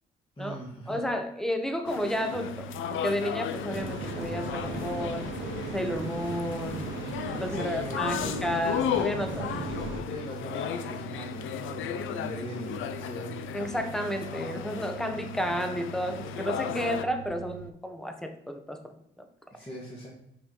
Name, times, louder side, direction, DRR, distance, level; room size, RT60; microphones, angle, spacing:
voice 1, 0.4-1.0 7.5-8.5 9.4-9.7 10.1-13.4 19.5-20.1, equal, 25° left, -6 dB, 2.3 m, -40 dB
voice 2, 0.9-6.9 7.4-9.7 13.5-18.9, equal, ahead, 6 dB, 1.1 m, -32 dB
sound 1, 1.8-17.0, left 9 dB, 80° left, 0.7 m, -35 dB
sound 2, 2.3-17.7, right 18 dB, 45° right, 0.5 m, -45 dB
sound 3, 3.7-10.0, right 3 dB, 75° right, 1.4 m, -37 dB
6.2 x 5.7 x 4.6 m, 0.75 s
cardioid pair, 90°, 20 cm